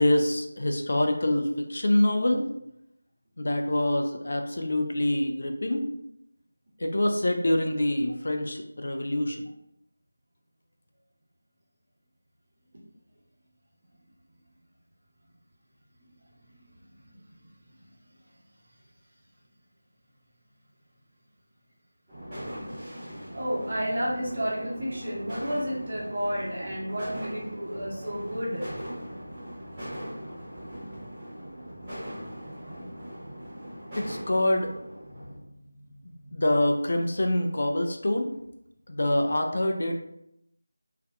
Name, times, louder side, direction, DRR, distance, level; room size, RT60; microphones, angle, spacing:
voice 1, 0.0-2.4 3.4-5.8 6.8-9.5 33.9-34.7 36.3-38.3 38.9-40.0, left 1 dB, 55° left, 3 dB, 0.3 m, -25 dB
sound 1, 22.1-35.4, equal, 10° right, 1.0 m, -40 dB
voice 2, 23.3-28.6 35.1-35.5 36.2-36.3, equal, 40° right, -5 dB, 0.9 m, -31 dB
2.6 x 2.3 x 2.2 m, 0.80 s
figure-of-eight pair, 165°, 0 cm